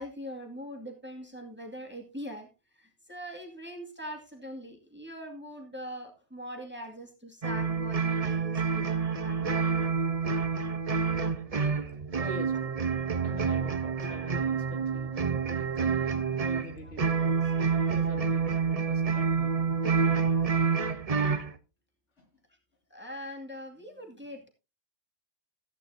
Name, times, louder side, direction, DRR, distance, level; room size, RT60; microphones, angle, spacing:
voice 1, 0.0-9.9 16.8-16.9 22.9-24.5, equal, 10° right, 2 dB, 2.2 m, -42 dB
sound 1, 7.4-21.5, right 5 dB, 35° right, 0.8 m, -28 dB
voice 2, 12.2-12.8 13.2-15.1 16.5-17.5 17.9-19.7 22.2-22.3, left 1 dB, 60° left, 3 dB, 2.8 m, -45 dB
14.5 x 10.5 x 2.7 m, 0.29 s
omnidirectional pair, 1.3 m